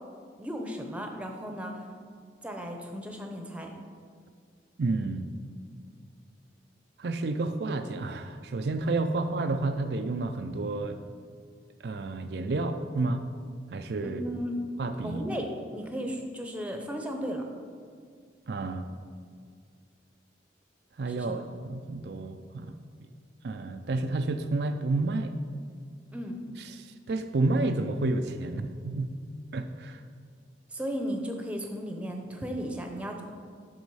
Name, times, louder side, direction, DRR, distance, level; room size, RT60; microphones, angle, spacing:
voice 1, 0.4-1.8 2.4-3.7 14.0-14.6 15.0-17.4 21.1-21.4 26.1-26.4 30.7-33.2, equal, 5° right, 3 dB, 0.8 m, -35 dB
voice 2, 4.8-5.3 7.0-11.0 11.8-13.3 13.7-14.2 14.8-15.2 18.5-18.9 21.0-22.7 23.4-25.3 26.6-29.1 29.5-30.0, right 2 dB, 65° right, 7 dB, 0.4 m, -30 dB
9.3 x 6.3 x 4.8 m, 2.1 s
head